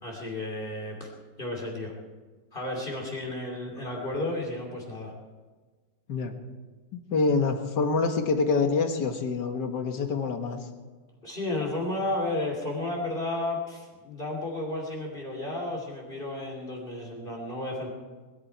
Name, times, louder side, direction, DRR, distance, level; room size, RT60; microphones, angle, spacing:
voice 1, 0.0-1.1 1.4-1.9 2.5-5.1 11.2-17.9, left 2 dB, 30° left, 0 dB, 2.9 m, -32 dB
voice 2, 6.9-10.6, left 4 dB, 65° left, 5 dB, 2.0 m, -26 dB
21.5 x 13.0 x 4.7 m, 1.4 s
omnidirectional pair, 2.0 m